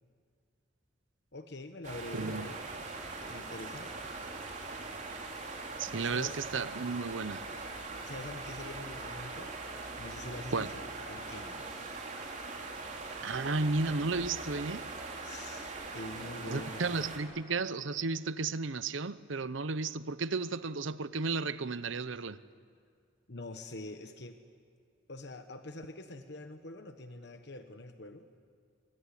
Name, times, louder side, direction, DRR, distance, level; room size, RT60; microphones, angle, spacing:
voice 1, 1.3-2.6 3.3-3.9 6.0-6.4 8.0-9.6 10.0-11.6 15.2-17.4 23.3-24.4 25.1-28.3, left 2 dB, 55° left, 1.2 m, -45 dB
sound 1, 1.8-17.2, right 3 dB, 40° right, 3.5 m, -41 dB
voice 2, 2.1-2.5 5.8-7.5 10.5-10.7 13.2-14.9 16.5-22.4, right 4 dB, 80° right, 0.8 m, -33 dB
25.0 x 23.0 x 9.9 m
head